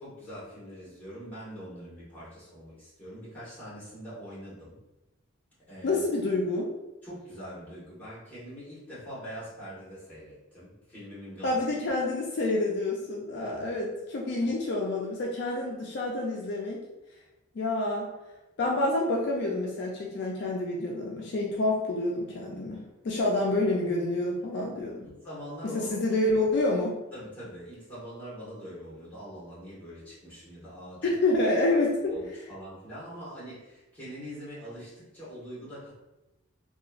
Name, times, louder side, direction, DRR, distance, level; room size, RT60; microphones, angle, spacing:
voice 1, 0.0-4.8 5.7-6.0 7.0-11.6 13.4-13.8 14.4-14.5 25.0-26.2 27.1-31.0 32.1-35.9, equal, 10° left, -10 dB, 1.2 m, -43 dB
voice 2, 5.8-6.7 11.4-16.8 17.5-18.1 18.6-25.1 25.7-27.0 31.0-32.1, left 2 dB, 55° left, -2 dB, 0.3 m, -28 dB
2.9 x 2.2 x 2.4 m, 1.0 s
head